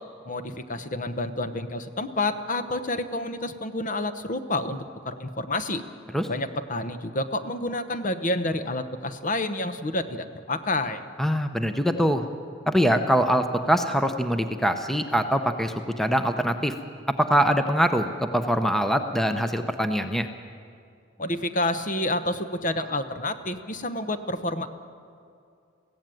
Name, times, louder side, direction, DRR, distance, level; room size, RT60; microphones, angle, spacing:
voice 1, 0.2-4.8 5.0-5.8 6.3-11.0 21.2-24.7, left 2 dB, 40° left, 10 dB, 0.9 m, -29 dB
voice 2, 11.2-12.2 12.7-16.7 17.2-20.3, equal, ahead, 7 dB, 0.8 m, -23 dB
22.5 x 16.0 x 9.1 m, 2.4 s
head